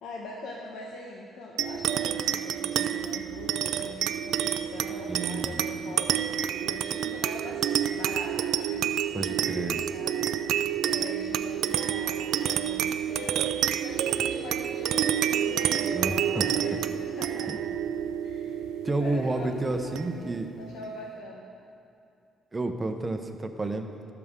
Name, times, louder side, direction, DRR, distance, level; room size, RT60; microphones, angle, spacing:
voice 1, 0.0-10.3 10.8-17.6 18.2-18.6 18.8-21.4, left 2 dB, 85° left, -2 dB, 1.1 m, -42 dB
sound 1, 1.6-20.4, right 10 dB, 80° right, 0.4 m, -29 dB
voice 2, 5.1-5.6 5.9-6.0 9.1-9.8 15.9-16.5 17.5-17.6 18.8-20.5 22.5-23.9, right 2 dB, 25° right, 6 dB, 0.8 m, -30 dB
20.5 x 6.9 x 3.7 m, 2.6 s
cardioid pair, 90°, 0 cm